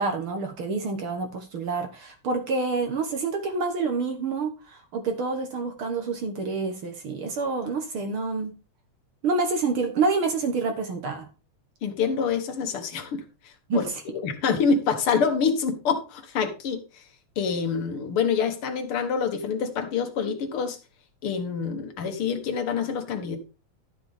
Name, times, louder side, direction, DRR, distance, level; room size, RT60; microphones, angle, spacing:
voice 1, 0.0-8.5 9.2-11.3 13.7-13.8, right 4 dB, 55° right, 5 dB, 1.8 m, -27 dB
voice 2, 11.8-17.0 17.4-20.8 21.2-23.4, left 6 dB, 55° left, 7 dB, 2.0 m, -26 dB
12.0 x 7.6 x 3.5 m, 0.31 s
omnidirectional pair, 3.4 m